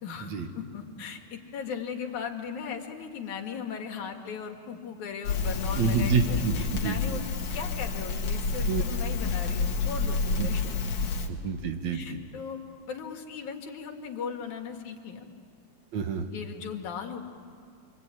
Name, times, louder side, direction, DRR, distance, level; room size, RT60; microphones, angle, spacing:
voice 1, 0.0-7.3 7.5-10.6 11.9-12.6 12.9-15.3 16.3-17.2, left 6 dB, 80° left, 4 dB, 3.3 m, -37 dB
Crackle, 5.2-11.3, left 4 dB, 60° left, 2.9 m, -29 dB
voice 2, 5.7-7.2 8.7-8.8 10.4-10.5 11.3-12.2 15.9-16.3, right 5 dB, 70° right, 6 dB, 2.9 m, -28 dB
27.5 x 24.0 x 9.0 m, 2.2 s
omnidirectional pair, 3.3 m